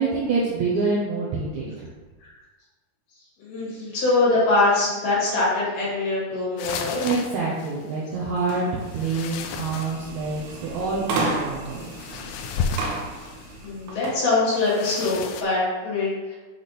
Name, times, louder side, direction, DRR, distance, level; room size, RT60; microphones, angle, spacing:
voice 1, 0.0-1.9 7.0-11.8, right 4 dB, 90° right, -5 dB, 1.6 m, -26 dB
voice 2, 3.4-7.1 13.6-16.4, left 2 dB, 65° left, -8 dB, 4.1 m, -23 dB
sound 1, 6.6-7.9 8.8-10.7 11.7-13.6 14.5-15.4, left 6 dB, 85° left, 2.7 m, -33 dB
sound 2, 8.4-14.2, right 3 dB, 70° right, 2.3 m, -33 dB
8.1 x 3.4 x 4.2 m, 1.2 s
omnidirectional pair, 4.7 m